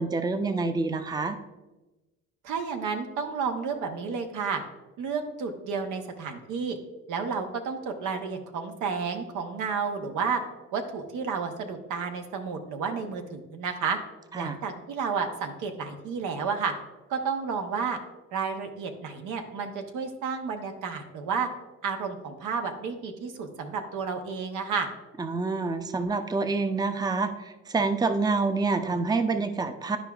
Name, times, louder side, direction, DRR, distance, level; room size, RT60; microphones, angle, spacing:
voice 1, 0.0-1.4 14.3-14.6 25.2-30.0, right 3 dB, 15° right, 9 dB, 0.5 m, -27 dB
voice 2, 2.4-4.6 5.0-6.8 7.1-10.4 10.7-14.0 14.4-16.7 17.1-18.0 18.3-21.5 21.8-24.9, right 5 dB, 90° right, 5 dB, 0.9 m, -31 dB
11.0 x 4.8 x 2.3 m, 1.1 s
cardioid pair, 90°, 30 cm